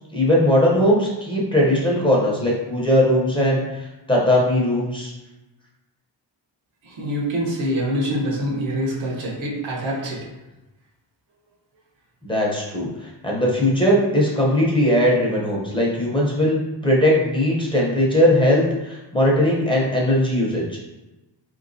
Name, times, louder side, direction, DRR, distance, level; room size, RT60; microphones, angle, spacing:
voice 1, 0.1-5.1 12.2-20.6, left 1 dB, 10° left, -5 dB, 0.7 m, -19 dB
voice 2, 6.8-10.3, equal, 90° right, -3 dB, 1.1 m, -25 dB
4.2 x 2.9 x 2.6 m, 1.0 s
wide cardioid pair, 155°, 45 cm